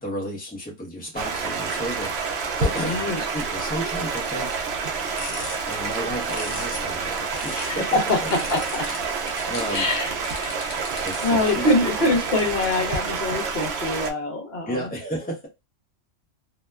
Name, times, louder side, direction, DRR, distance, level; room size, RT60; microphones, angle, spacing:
voice 1, 0.0-4.5 5.7-8.0 9.2-9.8 11.0-11.7 14.7-15.5, right 1 dB, 10° left, -2 dB, 0.9 m, -32 dB
Stream, 1.2-14.1, right 4 dB, 65° right, 0.8 m, -28 dB
voice 2, 2.8-3.2 7.7-8.2 8.5-8.9 9.7-10.1 11.2-14.8, left 2 dB, 60° left, 1 dB, 1.1 m, -24 dB
sound 1, 4.8-7.8 8.3-11.4, left 3 dB, 40° left, 0.7 m, -39 dB
2.8 x 2.2 x 2.2 m, 0.23 s
omnidirectional pair, 1.2 m